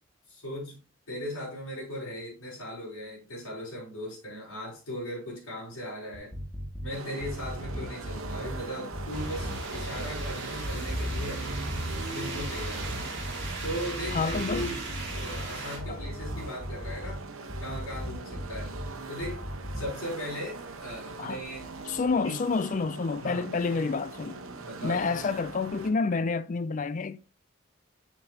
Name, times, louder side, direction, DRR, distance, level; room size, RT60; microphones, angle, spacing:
voice 1, 0.3-0.8 1.1-6.3 6.8-11.5 12.1-13.0 13.6-17.2 17.6-18.8 19.1-19.4 19.7-21.7 22.2-22.3 23.2-23.6 24.6-25.0, equal, 80° left, 4.7 m, -38 dB
sound 1, 6.1-6.9 7.2-8.6 8.9-10.3 10.6-12.0 12.3-13.7 14.1-15.4 15.8-17.2 17.5-18.9 19.2-19.9, equal, 5° left, 1.8 m, -37 dB
sound 2, 6.9-25.9, right 3 dB, 80° right, 1.1 m, -42 dB
sound 3, 9.1-15.8, right 2 dB, 55° right, 2.2 m, -36 dB
voice 2, 14.1-14.7 15.9-16.0 21.2-21.4 21.9-24.4 24.8-27.2, left 4 dB, 35° left, 0.4 m, -29 dB
7.4 x 6.6 x 2.8 m
head